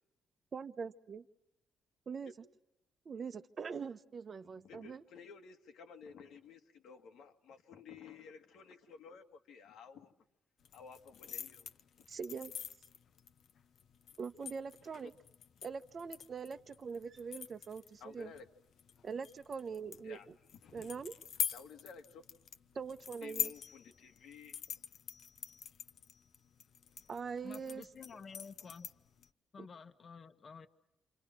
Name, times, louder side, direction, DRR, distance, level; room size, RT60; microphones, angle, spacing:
voice 1, 0.5-1.3 2.1-2.3 3.0-5.0 12.1-12.5 14.2-15.1 15.6-18.3 19.0-20.3 20.7-21.1 22.7-23.5 27.1-27.8 29.6-29.7, right 5 dB, 35° right, 0.9 m, -43 dB
voice 2, 4.6-10.1 10.7-11.7 12.0-12.1 15.0-15.1 18.0-18.5 20.0-20.3 20.6-20.7 21.5-22.2 23.2-24.6, left 6 dB, 90° left, 2.2 m, -53 dB
sound 1, 10.6-29.3, left 8 dB, 60° left, 0.9 m, -45 dB
voice 3, 27.4-28.9 29.5-30.7, left 5 dB, 35° left, 1.3 m, -51 dB
28.5 x 27.5 x 6.1 m
cardioid pair, 170°, 0 cm